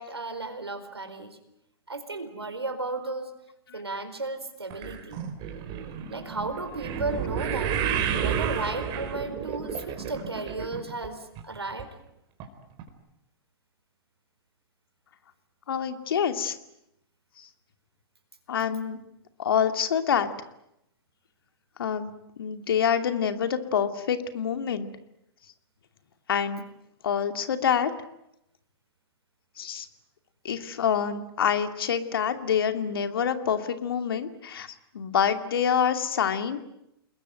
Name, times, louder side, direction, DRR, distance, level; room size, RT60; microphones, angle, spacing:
voice 1, 0.0-1.4 1.9-3.3 3.7-5.2 6.1-7.8 8.1-11.9, right 3 dB, 90° right, 9 dB, 4.4 m, -34 dB
sound 1, 4.7-11.1 11.4-11.8 12.4-12.5 12.8-12.9, right 8 dB, 35° right, 4.4 m, -31 dB
voice 2, 15.7-16.6 17.4-17.5 18.5-19.0 19.4-20.3 21.8-24.9 26.3-26.6 27.0-27.9 29.6-29.9 30.4-34.7 34.9-36.6, left 8 dB, 65° left, 8 dB, 2.7 m, -26 dB
29.5 x 21.0 x 9.1 m, 0.80 s
figure-of-eight pair, 115°, 13 cm